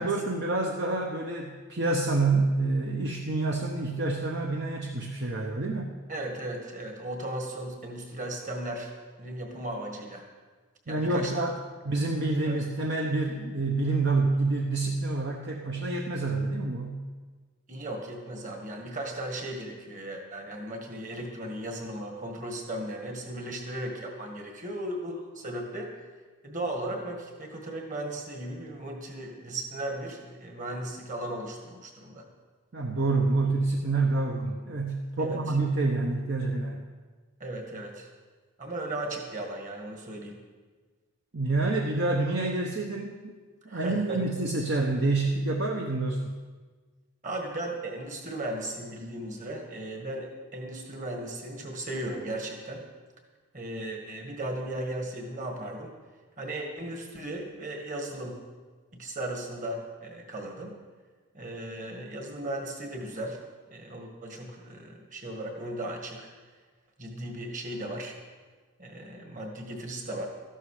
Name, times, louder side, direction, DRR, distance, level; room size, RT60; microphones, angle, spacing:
voice 1, 0.0-5.9 10.9-11.5 11.8-17.0 32.7-36.8 41.3-43.3 43.7-46.3, right 3 dB, 50° right, 1 dB, 0.9 m, -27 dB
voice 2, 6.1-8.9 9.2-10.3 10.9-11.5 12.5-12.6 17.7-25.9 26.4-32.3 35.2-35.4 37.4-38.1 38.6-40.4 43.7-44.2 47.2-52.8 53.5-55.9 56.4-58.4 58.9-60.7 61.3-63.4 63.7-66.3 67.0-68.2 68.8-70.3, right 1 dB, 35° right, 2 dB, 1.9 m, -36 dB
13.5 x 11.5 x 5.0 m, 1.4 s
head